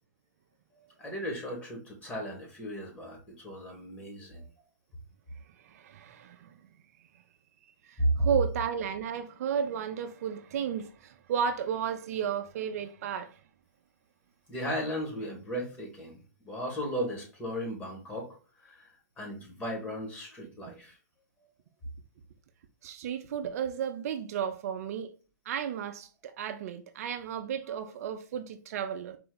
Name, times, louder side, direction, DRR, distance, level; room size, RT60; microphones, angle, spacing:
voice 1, 1.0-4.5 8.0-8.3 14.5-18.9 19.2-21.0 27.6-27.8, equal, 15° left, 1.9 m, -35 dB
voice 2, 5.6-6.5 7.9-13.4 22.8-25.1 25.5-29.2, right 8 dB, 60° right, 0.5 m, -33 dB
4.3 x 2.8 x 3.9 m
hypercardioid pair, 135°, 9 cm